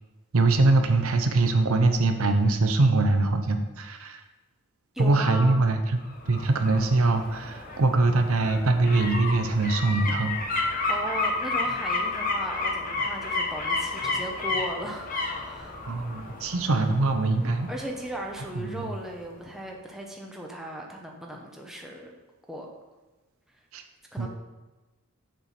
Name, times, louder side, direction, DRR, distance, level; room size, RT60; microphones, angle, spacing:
voice 1, 0.3-4.2 5.0-6.0 6.3-10.3 15.8-17.7 18.6-18.9 23.7-23.8 24.2-24.3, right 2 dB, 70° right, 6 dB, 0.7 m, -23 dB
voice 2, 4.9-5.7 10.9-15.8 17.7-22.2 22.5-22.7 24.1-24.3, equal, ahead, 0 dB, 0.8 m, -37 dB
sound 1, 6.0-18.8 19.2-19.3, left 3 dB, 35° left, 1.2 m, -31 dB
6.8 x 4.6 x 5.8 m, 1.2 s
head